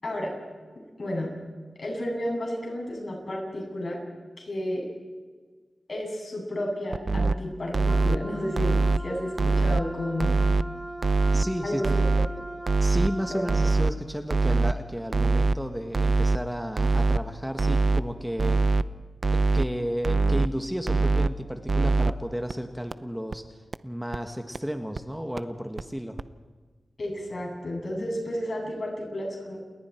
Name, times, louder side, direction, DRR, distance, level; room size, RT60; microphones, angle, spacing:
voice 1, 0.0-0.3 1.0-1.3 1.8-4.0 4.4-4.9 5.9-10.4 11.6-12.2 13.3-13.5 27.0-29.6, left 1 dB, 60° left, 0 dB, 7.8 m, -32 dB
sound 1, 6.9-7.3 7.7-8.2 8.6-9.0 9.4-9.8 10.2-10.6 11.0-11.4 11.8-12.3 12.7-13.1 13.5-13.9 14.3-14.7 15.1-15.6 15.9-16.4 16.8-17.2 17.6-18.0 18.4-18.8 19.2-19.7 20.0-20.5 20.9-21.3 21.7-22.1 22.5-22.6 22.9-23.0 23.3-23.4 23.7-23.8 24.1-24.2 24.5-24.6 25.0-25.1 25.4-25.5 25.8-25.9 26.2-26.3, right 3 dB, 55° right, 0.6 m, -22 dB
Wind instrument woodwind instrument, 7.8-13.8, right 1 dB, 25° right, 2.9 m, -39 dB
voice 2, 11.3-12.1 12.8-18.7 19.3-23.6 23.8-26.2, equal, 5° right, 5 dB, 1.6 m, -33 dB
29.5 x 21.0 x 4.6 m, 1.4 s
cardioid pair, 60°, 0 cm